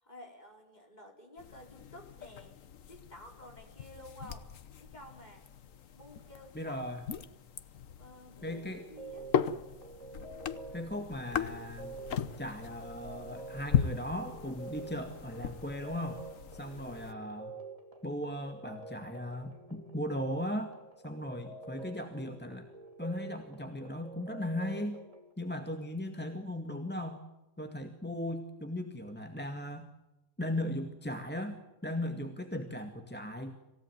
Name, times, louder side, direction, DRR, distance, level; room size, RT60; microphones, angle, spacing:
voice 1, 0.0-2.6 2.9-4.5 4.8-5.5 5.9-7.0 8.0-9.3 16.9-17.2, left 1 dB, 35° left, 2 dB, 4.9 m, -52 dB
sound 1, 1.4-17.1, left 8 dB, 85° left, 1.4 m, -38 dB
voice 2, 6.5-7.1 8.4-8.8 10.7-11.9 12.4-16.2 16.5-17.6 18.0-20.7 21.0-22.7 23.0-25.0 25.4-27.2 27.6-29.9 30.4-31.6 31.8-33.6, left 1 dB, 10° left, 5 dB, 1.9 m, -37 dB
sound 2, 8.3-25.3, right 3 dB, 25° right, 3.2 m, -48 dB
27.0 x 16.5 x 9.2 m, 1.0 s
omnidirectional pair, 1.3 m